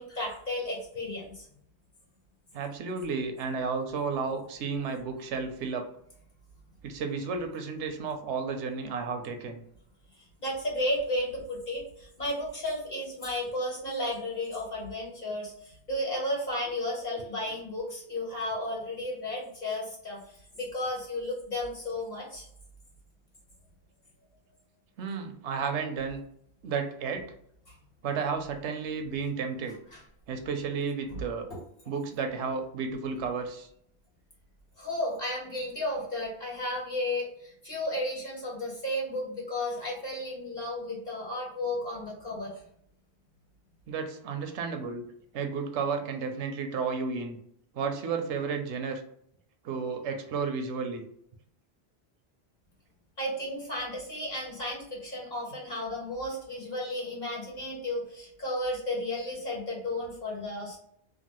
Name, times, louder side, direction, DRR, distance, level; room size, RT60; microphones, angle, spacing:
voice 1, 0.0-1.5 10.2-22.5 27.7-27.8 29.9-30.0 31.1-31.2 31.5-31.6 34.8-42.5 53.2-60.8, left 1 dB, 40° left, -4 dB, 1.4 m, -33 dB
voice 2, 2.5-5.8 6.8-9.6 25.0-26.2 26.6-27.2 28.0-29.7 30.3-31.5 31.9-33.7 43.9-45.0 45.3-47.4 47.7-49.0 49.6-51.0, right 5 dB, 85° right, 5 dB, 0.9 m, -32 dB
3.0 x 2.3 x 2.9 m, 0.69 s
omnidirectional pair, 1.2 m